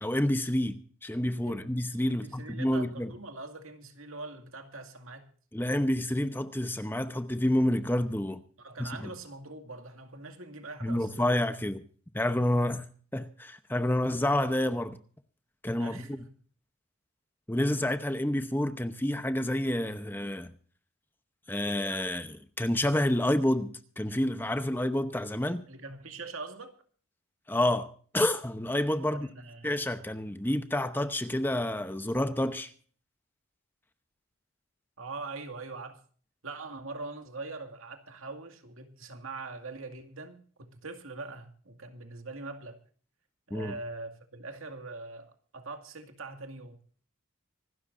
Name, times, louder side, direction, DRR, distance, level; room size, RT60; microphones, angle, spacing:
voice 1, 0.0-3.1 5.5-8.4 8.8-9.1 10.8-11.8 12.1-12.9 13.1-15.0 15.6-16.2 17.5-20.5 21.5-25.6 27.5-29.3 29.6-32.7 43.5-43.7, left 1 dB, 10° left, 0.8 m, -29 dB
voice 2, 2.1-5.3 8.6-11.3 15.7-16.3 25.7-26.8 29.1-29.7 35.0-36.0 36.4-42.8 43.5-46.8, right 3 dB, 80° right, 2.3 m, -43 dB
25.5 x 12.5 x 2.6 m
head